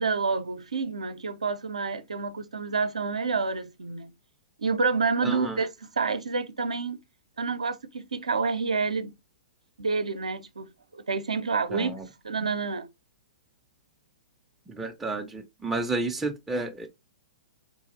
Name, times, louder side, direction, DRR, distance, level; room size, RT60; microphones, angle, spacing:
voice 1, 0.0-4.1 4.6-5.7 6.0-7.0 7.4-9.2 9.8-12.9, right 4 dB, 70° right, 0.5 m, -28 dB
voice 2, 5.2-5.6 11.7-12.1 14.7-16.9, right 3 dB, 5° right, 0.4 m, -31 dB
3.8 x 2.4 x 2.5 m
figure-of-eight pair, 115°, 4 cm